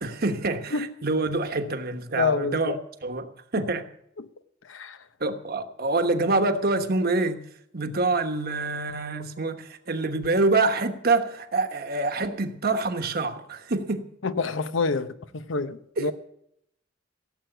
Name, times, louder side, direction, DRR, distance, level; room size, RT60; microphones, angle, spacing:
voice 1, 0.0-2.8 3.0-3.8 5.2-7.4 7.7-14.1 16.0-16.1, right 3 dB, 50° right, 1.3 m, -26 dB
voice 2, 2.1-2.8 4.2-4.3 4.7-5.0 14.2-16.1, left 4 dB, 90° left, 0.9 m, -27 dB
16.5 x 7.9 x 8.0 m
head